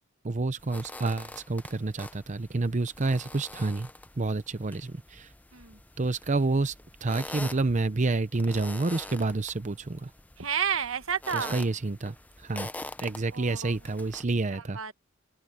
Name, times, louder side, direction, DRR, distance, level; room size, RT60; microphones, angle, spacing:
voice 1, 0.2-3.9 4.2-5.3 6.0-6.7 7.0-10.1 11.3-12.1 12.4-12.7 13.0-14.8, right 3 dB, 35° right, 0.7 m, -29 dB
sound 1, 0.6-14.3, left 2 dB, 10° left, 0.7 m, -45 dB
voice 2, 10.4-11.6 13.3-13.8 14.7-14.9, right 7 dB, 85° right, 1.4 m, -31 dB
open air
head